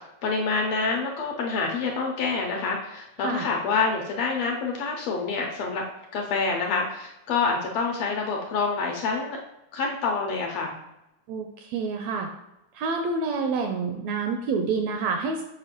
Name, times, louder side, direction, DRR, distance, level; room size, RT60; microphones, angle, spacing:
voice 1, 0.2-5.8 6.1-9.4 9.7-10.8, left 4 dB, 80° left, 0 dB, 1.6 m, -27 dB
voice 2, 11.3-12.3 12.7-15.4, right 4 dB, 80° right, 4 dB, 1.6 m, -28 dB
6.8 x 4.8 x 2.9 m, 0.91 s
omnidirectional pair, 3.4 m